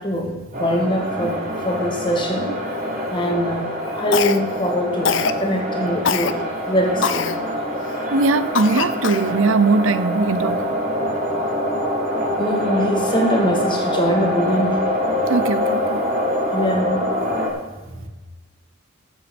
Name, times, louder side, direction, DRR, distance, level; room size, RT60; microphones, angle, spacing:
voice 1, 0.0-2.5 3.1-3.7 4.0-6.4 6.7-7.3 12.4-14.8 16.5-17.0 17.9-18.0, equal, 25° left, 1 dB, 2.0 m, -23 dB
sound 1, 0.5-17.5, equal, 40° right, 3.1 m, -24 dB
Cough, 4.1-4.6 5.0-5.4 6.0-6.3 7.0-7.4 7.9-8.0 8.5-9.3, left 6 dB, 65° left, 0.6 m, -22 dB
voice 2, 8.1-10.6 15.3-16.0, right 3 dB, 75° right, 14 dB, 0.7 m, -20 dB
13.5 x 8.0 x 5.2 m, 1.2 s
head